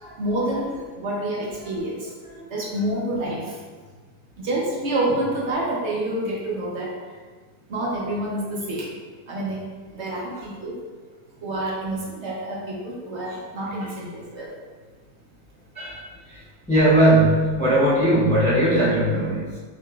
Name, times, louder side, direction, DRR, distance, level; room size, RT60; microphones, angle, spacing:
voice 1, 0.2-2.1 2.5-3.6 4.4-6.9 7.7-9.0 9.3-9.6 9.9-10.8 11.4-14.5, right 1 dB, 55° right, -4 dB, 1.0 m, -28 dB
voice 2, 13.8-14.3 15.7-19.6, right 1 dB, 10° left, -7 dB, 0.3 m, -20 dB
5.8 x 3.0 x 2.4 m, 1.4 s
omnidirectional pair, 1.6 m